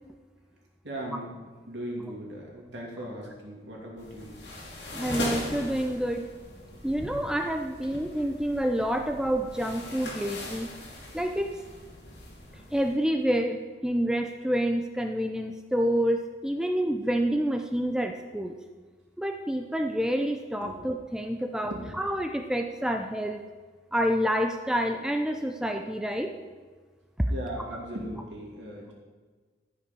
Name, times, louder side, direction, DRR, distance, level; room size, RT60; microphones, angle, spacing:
voice 1, 0.8-4.3 6.7-6.8 20.6-20.8 21.6-21.8 27.3-28.9, right 1 dB, 90° right, -2 dB, 2.6 m, -38 dB
sound 1, 4.0-12.9, left 1 dB, 80° left, 2.4 m, -39 dB
voice 2, 4.9-6.2 6.8-10.7 11.1-11.5 12.7-18.6 19.2-23.4 23.9-26.3 27.2-27.3, equal, 5° right, 4 dB, 0.4 m, -28 dB
13.0 x 5.5 x 5.3 m, 1.4 s
head